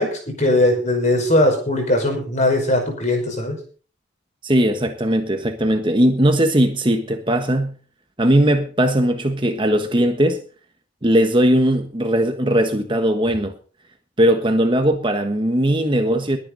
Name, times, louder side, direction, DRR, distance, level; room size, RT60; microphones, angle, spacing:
voice 1, 0.0-3.6, left 1 dB, 35° left, 5.4 m, -19 dB
voice 2, 4.4-7.7 8.2-10.4 11.0-13.5 14.2-16.4, right 1 dB, 25° right, 1.4 m, -18 dB
22.0 x 9.6 x 4.1 m
head